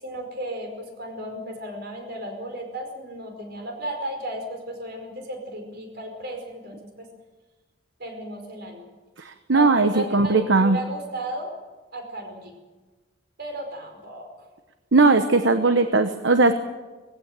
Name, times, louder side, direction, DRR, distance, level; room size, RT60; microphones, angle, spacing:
voice 1, 0.0-7.1 8.0-8.8 9.5-11.5 11.9-12.5 13.4-14.5, right 1 dB, 60° right, 4 dB, 5.1 m, -35 dB
voice 2, 9.2-10.8 14.9-16.5, right 3 dB, 75° right, 8 dB, 1.1 m, -19 dB
20.0 x 16.0 x 9.1 m, 1.3 s
head